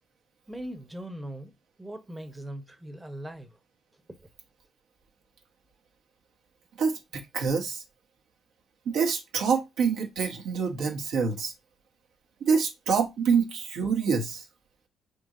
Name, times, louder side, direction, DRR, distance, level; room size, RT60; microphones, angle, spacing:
voice 1, 0.5-1.5 1.8-3.6 4.1-4.3, right 1 dB, 10° right, 0.8 m, -40 dB
voice 2, 6.8-7.8 8.8-11.5 12.4-14.4, right 5 dB, 80° right, 1.1 m, -26 dB
5.1 x 3.1 x 2.5 m
cardioid pair, 90°, 0 cm